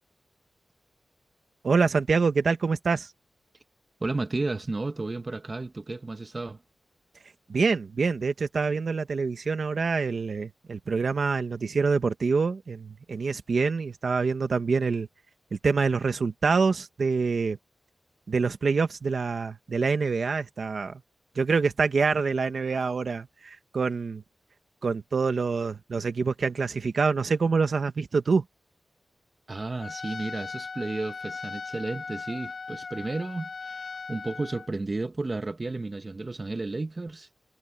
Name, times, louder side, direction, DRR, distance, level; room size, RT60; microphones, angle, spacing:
voice 1, 1.6-3.1 7.5-15.1 15.6-17.6 18.3-21.0 21.3-24.2 24.8-28.4, right 4 dB, 60° right, 1.6 m, -26 dB
voice 2, 4.0-6.6 29.5-37.3, right 2 dB, 30° right, 1.3 m, -33 dB
Trumpet, 29.8-34.7, left 4 dB, 60° left, 4.2 m, -38 dB
wide cardioid pair, 130°, 0 cm